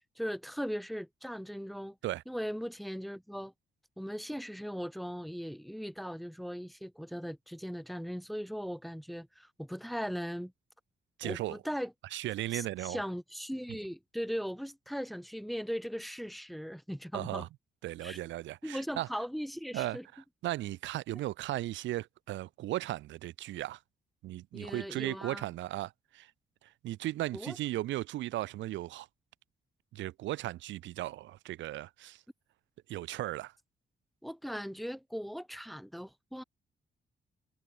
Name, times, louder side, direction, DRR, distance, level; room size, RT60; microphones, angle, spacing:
voice 1, 0.2-1.9 2.3-3.5 4.0-10.5 11.2-11.9 12.5-17.5 18.0-18.2 18.6-20.0 24.5-25.4 27.3-27.6 34.2-36.4, equal, ahead, 3.2 m, -38 dB
voice 2, 11.2-11.6 12.1-13.0 17.1-17.5 17.8-19.1 19.7-23.8 24.2-26.3 26.6-29.1 29.9-32.2 32.9-33.5, right 15 dB, 90° right, 0.9 m, -36 dB
cardioid pair, 70°, 19 cm